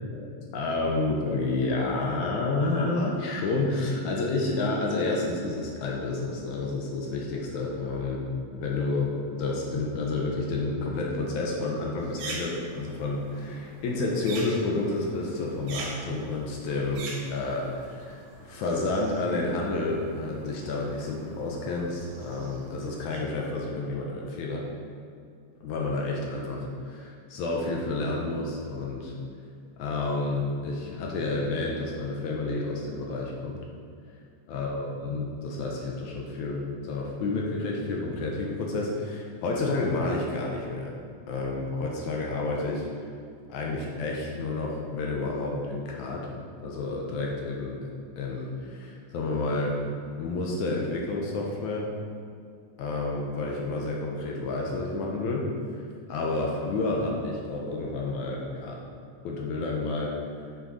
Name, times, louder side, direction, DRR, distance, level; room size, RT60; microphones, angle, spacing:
voice 1, 0.5-8.3 8.5-24.7 25.6-29.1 29.8-33.6 34.5-40.9 41.3-42.9 43.5-46.3 46.6-47.9 48.2-49.8 50.2-51.9 52.8-55.5 56.1-58.8 59.2-60.1, left 2 dB, 70° left, -1 dB, 2.1 m, -30 dB
sound 1, 12.0-23.2, right 3 dB, 65° right, 2.4 m, -44 dB
7.2 x 6.5 x 4.8 m, 2.3 s
omnidirectional pair, 3.9 m